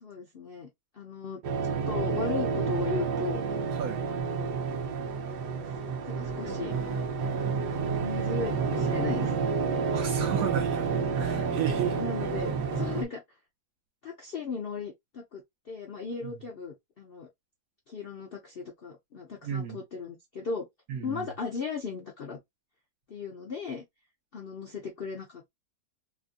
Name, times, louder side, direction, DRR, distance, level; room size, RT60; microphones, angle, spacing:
voice 1, 0.0-0.7 0.9-3.4 4.1-4.6 6.1-6.7 8.0-9.3 12.0-13.2 14.0-17.3 17.9-20.7 21.0-22.4 23.1-23.8 24.3-25.5, left 5 dB, 60° left, 0.6 m, -36 dB
sound 1, 1.4-13.0, right 5 dB, 90° right, 1.4 m, -30 dB
sound 2, 6.4-13.0, right 3 dB, 40° right, 1.2 m, -36 dB
voice 2, 9.9-12.0 16.2-16.3 19.4-19.8 20.9-21.3, right 9 dB, 65° right, 1.3 m, -33 dB
3.2 x 2.4 x 2.5 m
omnidirectional pair, 1.7 m